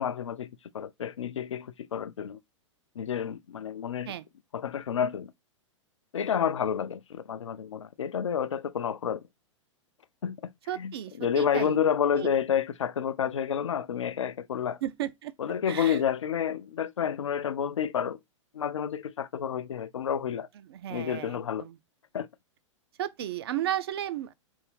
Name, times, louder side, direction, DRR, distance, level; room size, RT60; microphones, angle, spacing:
voice 1, 0.0-2.4 3.0-4.1 4.5-5.3 6.1-9.2 10.2-10.5 10.8-14.8 15.4-18.2 18.5-20.5 20.9-21.7 22.1-22.3, left 8 dB, 70° left, 0.4 m, -30 dB
voice 2, 10.7-11.8 12.1-12.3 14.8-15.3 15.7-16.0 20.7-21.8 23.0-24.3, right 12 dB, 50° right, 0.4 m, -34 dB
3.5 x 2.6 x 3.1 m
figure-of-eight pair, 105°, 16 cm